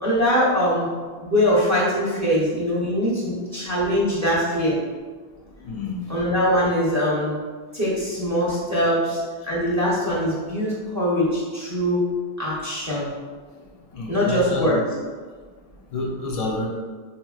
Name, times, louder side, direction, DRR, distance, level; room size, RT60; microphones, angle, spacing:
voice 1, 0.0-0.9 1.2-4.8 6.1-7.4 7.7-9.2 9.5-12.0 12.4-13.1 14.1-14.8, equal, 20° right, -7 dB, 0.6 m, -22 dB
voice 2, 5.6-6.0 13.9-14.8 15.9-16.7, left 2 dB, 50° left, -1 dB, 0.5 m, -28 dB
3.6 x 2.8 x 2.3 m, 1.5 s
omnidirectional pair, 1.1 m